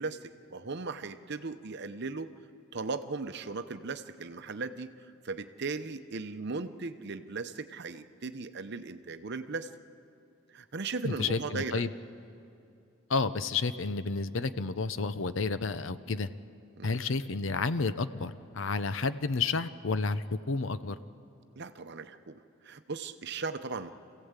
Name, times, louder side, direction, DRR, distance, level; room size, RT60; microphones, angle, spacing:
voice 1, 0.0-2.3 2.7-4.9 5.2-9.7 10.5-11.8 16.8-17.0 21.5-23.9, right 4 dB, 55° right, 10 dB, 0.8 m, -37 dB
voice 2, 11.0-11.9 13.1-16.3 16.8-21.0, left 4 dB, 65° left, 13 dB, 0.7 m, -31 dB
26.5 x 16.0 x 8.2 m, 2.6 s
head